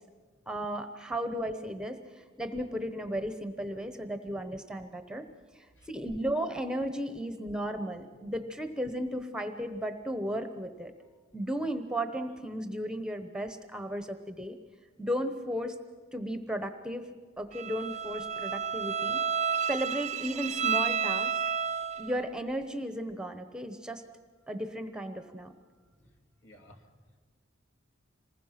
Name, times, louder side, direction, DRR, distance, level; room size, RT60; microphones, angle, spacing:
voice 1, 0.5-5.3 5.6-10.9 11.3-14.6 15.0-15.8 16.1-17.1 17.4-19.2 19.7-21.3 22.0-24.0 24.5-25.5, equal, 5° right, 8 dB, 1.0 m, -35 dB
Bowed string instrument, 17.5-22.2, right 7 dB, 35° right, 0.6 m, -31 dB
voice 2, 26.0-27.2, equal, 65° left, 3 dB, 2.9 m, -58 dB
26.5 x 20.5 x 5.9 m, 1.5 s
head